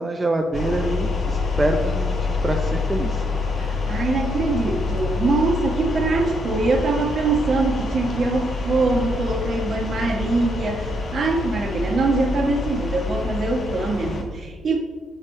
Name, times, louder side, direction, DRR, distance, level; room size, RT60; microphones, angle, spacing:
voice 1, 0.0-3.2, right 2 dB, 20° right, 3 dB, 0.5 m, -25 dB
sound 1, 0.5-14.2, left 3 dB, 50° left, 1.3 m, -27 dB
voice 2, 3.6-14.8, right 3 dB, 50° right, 2 dB, 1.2 m, -23 dB
7.6 x 4.7 x 4.3 m, 1.6 s
cardioid pair, 90°, 0 cm